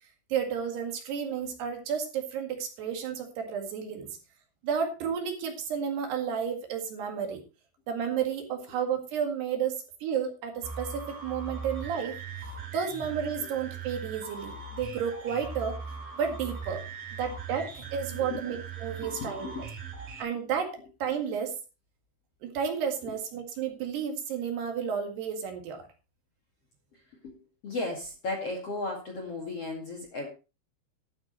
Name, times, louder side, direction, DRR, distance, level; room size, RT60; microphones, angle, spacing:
voice 1, 0.3-4.1 4.6-7.4 7.9-9.8 10.0-12.2 12.7-15.8 16.2-16.8 17.2-19.6 20.2-21.5 22.4-25.8, right 7 dB, 65° right, 3 dB, 3.8 m, -32 dB
sound 1, 10.6-20.2, right 5 dB, 45° right, 4.2 m, -40 dB
voice 2, 18.1-18.5 19.0-19.9 23.0-23.1 26.9-27.3 27.6-30.3, left 2 dB, 45° left, 2 dB, 2.3 m, -36 dB
13.0 x 12.0 x 3.2 m, 0.31 s
omnidirectional pair, 5.4 m